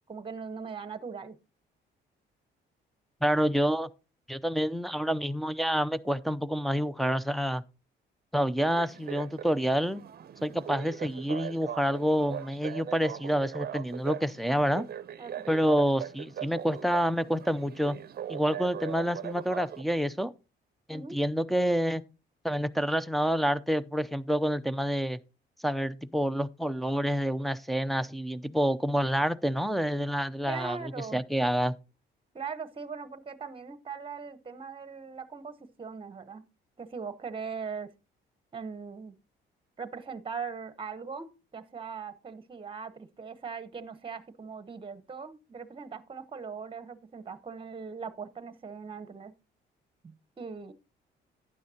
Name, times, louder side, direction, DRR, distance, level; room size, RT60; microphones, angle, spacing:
voice 1, 0.1-1.4 15.2-15.5 20.9-21.2 30.5-31.2 32.3-36.4 36.8-37.9 38.5-39.2 39.8-49.3 50.0-50.7, right 5 dB, 25° right, 1.0 m, -40 dB
voice 2, 3.2-3.9 4.3-7.6 8.3-10.0 10.4-14.9 15.5-18.0 18.3-20.3 20.9-22.0 22.4-25.2 25.6-31.7, equal, ahead, 0.5 m, -28 dB
sound 1, 8.6-19.8, right 10 dB, 50° right, 0.7 m, -40 dB
12.0 x 9.6 x 2.8 m
cardioid pair, 90°, 20 cm